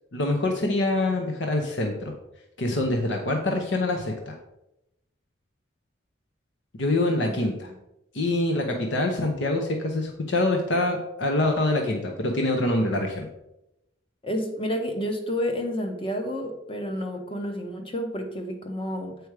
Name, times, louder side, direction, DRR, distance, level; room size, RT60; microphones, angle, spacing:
voice 1, 0.1-2.1 2.6-4.4 6.7-7.7 8.1-13.3, left 2 dB, 65° left, 2 dB, 0.8 m, -25 dB
voice 2, 14.2-19.2, equal, 25° left, 4 dB, 0.9 m, -30 dB
7.8 x 4.7 x 4.8 m, 0.88 s
head